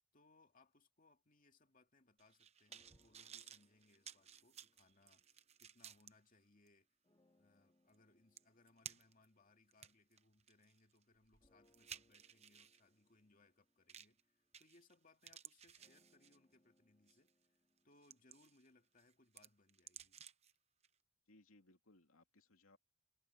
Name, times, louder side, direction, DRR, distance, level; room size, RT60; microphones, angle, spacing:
voice 1, 0.1-6.9 7.4-17.6 17.8-20.2, left 2 dB, 40° left, 2.4 m, -71 dB
sound 1, 2.2-6.1 6.7-6.8 7.9-8.0 8.4-9.3 9.7-12.8 13.9-14.2 14.5-14.9 15.2-16.5 17.1-17.3 17.8-18.7 19.0-20.5 20.8-20.9, right 8 dB, 30° right, 0.9 m, -57 dB
sound 2, 2.7-6.2 7.0-10.8 11.4-19.4, left 1 dB, 20° left, 2.0 m, -80 dB
voice 2, 21.3-22.8, left 2 dB, 80° left, 2.6 m, -68 dB
head